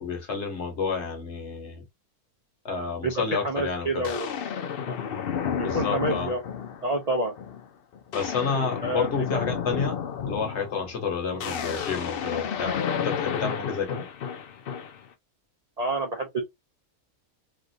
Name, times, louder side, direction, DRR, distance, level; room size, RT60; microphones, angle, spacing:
voice 1, 0.0-1.8 2.6-4.1 5.6-6.3 8.1-10.0 10.2-14.0, left 5 dB, 50° left, 1.2 m, -30 dB
voice 2, 3.0-4.3 4.9-5.0 5.6-6.4 6.8-7.4 8.8-9.4 11.4-11.5 15.8-16.4, right 2 dB, 85° right, 0.3 m, -28 dB
sound 1, 3.2-3.3 4.0-6.9 7.4-7.6 7.9-15.1, left 7 dB, 75° left, 0.5 m, -32 dB
3.5 x 2.5 x 2.6 m
omnidirectional pair, 1.6 m